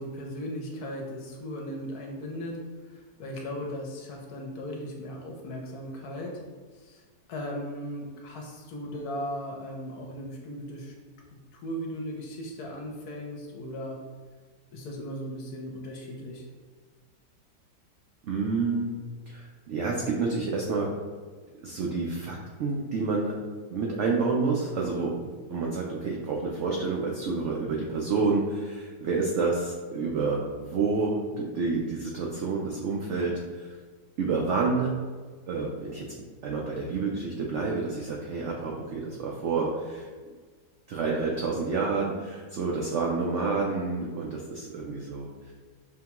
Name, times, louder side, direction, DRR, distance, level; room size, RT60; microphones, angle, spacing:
voice 1, 0.0-2.6 2.9-6.4 6.7-7.0 7.3-10.9 11.5-14.0 14.7-16.4, equal, 70° left, 0 dB, 1.1 m, -37 dB
voice 2, 18.2-18.9 19.3-20.9 21.6-23.4 23.7-33.7 34.2-35.0 35.5-36.1 36.4-40.1 40.9-45.5, right 4 dB, 80° right, -1 dB, 0.6 m, -29 dB
5.7 x 2.2 x 2.9 m, 1.5 s
omnidirectional pair, 1.8 m